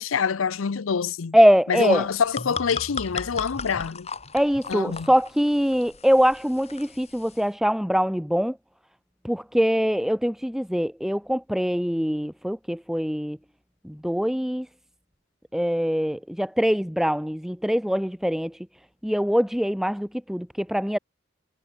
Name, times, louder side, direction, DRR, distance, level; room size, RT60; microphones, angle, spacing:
voice 1, 0.0-1.4 1.7-4.1 4.7-5.1, left 6 dB, 90° left, 0.6 m, -26 dB
voice 2, 1.3-2.1 4.3-8.6 9.2-13.4 13.8-14.7 15.5-18.6 19.0-21.0, equal, ahead, 1.0 m, -23 dB
sound 1, 2.0-7.5, left 5 dB, 30° left, 6.5 m, -37 dB
head